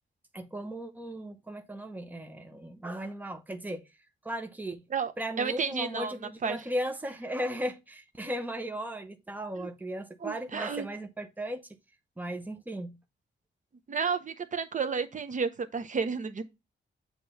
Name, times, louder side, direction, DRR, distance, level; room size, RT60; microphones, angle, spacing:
voice 1, 0.3-3.8 4.2-4.8 5.2-11.7 12.2-13.0, equal, 10° right, 0.8 m, -36 dB
voice 2, 5.4-6.1 6.4-6.7 9.6-9.7 10.2-10.9 13.9-16.4, right 5 dB, 40° right, 0.8 m, -31 dB
7.5 x 3.0 x 5.4 m
wide cardioid pair, 160°, 20 cm